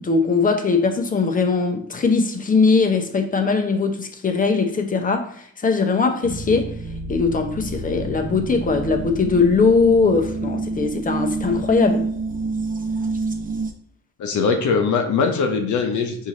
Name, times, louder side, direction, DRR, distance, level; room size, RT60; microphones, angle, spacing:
voice 1, 0.0-6.7 7.1-12.1, left 4 dB, 30° left, 0.8 m, -20 dB
sound 1, 6.2-13.7, right 3 dB, 25° right, 0.7 m, -28 dB
voice 2, 14.2-16.3, left 5 dB, 75° left, 0.8 m, -21 dB
4.6 x 2.8 x 3.9 m
cardioid pair, 90°, 30 cm